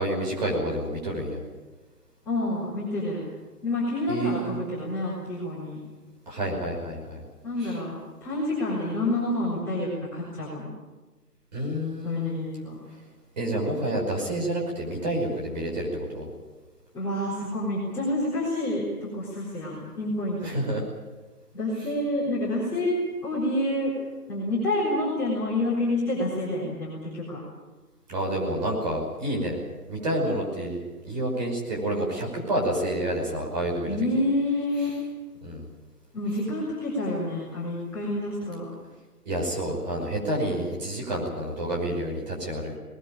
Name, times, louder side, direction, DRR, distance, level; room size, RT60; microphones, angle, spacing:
voice 1, 0.0-1.4 4.1-4.6 6.3-7.2 7.6-7.7 11.5-12.4 13.4-16.3 20.4-20.8 28.1-29.6 29.9-34.0 35.4-35.7 39.3-42.8, right 1 dB, 30° right, -1 dB, 5.6 m, -29 dB
voice 2, 2.3-3.2 3.6-5.8 7.4-8.0 8.2-10.7 12.0-12.8 16.9-20.6 21.5-23.0 23.2-23.9 24.3-27.4 33.8-35.0 36.1-38.7 40.1-40.2, left 1 dB, 5° left, -11 dB, 3.9 m, -28 dB
20.5 x 20.0 x 8.8 m, 1.2 s
figure-of-eight pair, 160°, 46 cm